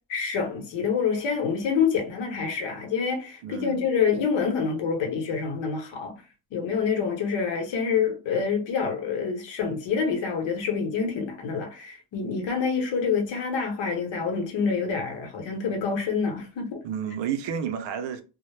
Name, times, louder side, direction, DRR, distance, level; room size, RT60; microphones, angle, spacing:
voice 1, 0.1-6.2 6.5-16.8, left 6 dB, 80° left, 0.9 m, -27 dB
voice 2, 3.4-3.8 16.8-18.2, right 8 dB, 75° right, 0.6 m, -31 dB
2.1 x 2.0 x 3.1 m
cardioid pair, 130°, 44 cm